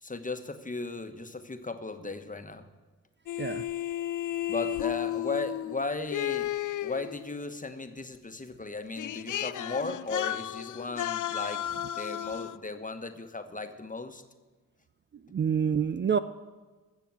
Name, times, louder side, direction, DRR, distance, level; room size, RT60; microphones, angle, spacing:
voice 1, 0.0-2.6 4.5-11.6 12.0-14.2, left 3 dB, 20° left, 8 dB, 1.2 m, -36 dB
sound 1, 3.3-7.4 8.6-8.7 9.0-12.6, left 12 dB, 60° left, 0.5 m, -33 dB
voice 2, 15.3-16.2, right 7 dB, 30° right, 11 dB, 0.5 m, -27 dB
15.0 x 6.8 x 7.5 m, 1.3 s
cardioid pair, 55°, 35 cm